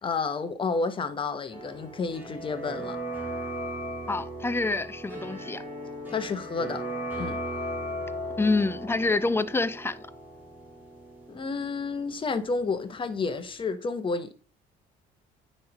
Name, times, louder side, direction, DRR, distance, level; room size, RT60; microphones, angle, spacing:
voice 1, 0.0-3.0 6.1-6.8 7.2-7.4 11.3-14.3, left 4 dB, 30° left, 0.9 m, -30 dB
sound 1, 1.5-13.2 13.5-13.6, equal, 10° right, 4.0 m, -37 dB
voice 2, 4.1-5.6 8.4-10.1, left 3 dB, 15° left, 0.4 m, -27 dB
9.2 x 3.2 x 5.0 m
cardioid pair, 110°, 17 cm